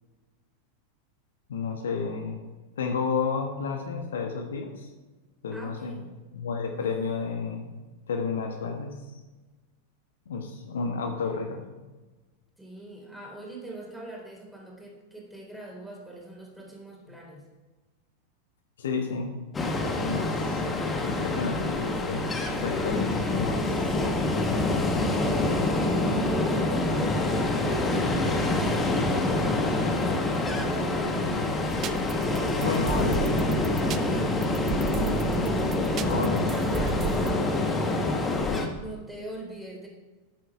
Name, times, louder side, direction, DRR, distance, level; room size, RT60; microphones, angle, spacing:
voice 1, 1.5-2.4 2.8-4.9 5.4-6.0 6.3-7.7 8.1-9.2 10.3-11.7 17.1-17.2 18.8-19.3 19.6-19.7 20.0-20.6 20.9-23.8 32.6-33.2 36.0-36.5, left 5 dB, 65° left, 4 dB, 1.3 m, -31 dB
voice 2, 5.5-6.1 12.6-17.4 23.6-29.3 30.0-31.3 33.7-38.0 38.7-39.9, right 2 dB, 5° right, -2 dB, 3.8 m, -42 dB
Ocean, 19.5-38.7, left 2 dB, 15° left, 1.6 m, -26 dB
sound 1, 27.5-31.9, right 3 dB, 75° right, 3.4 m, -42 dB
sound 2, 31.7-37.3, right 11 dB, 35° right, 0.5 m, -35 dB
13.0 x 8.6 x 4.9 m, 1.2 s
figure-of-eight pair, 90°, 0 cm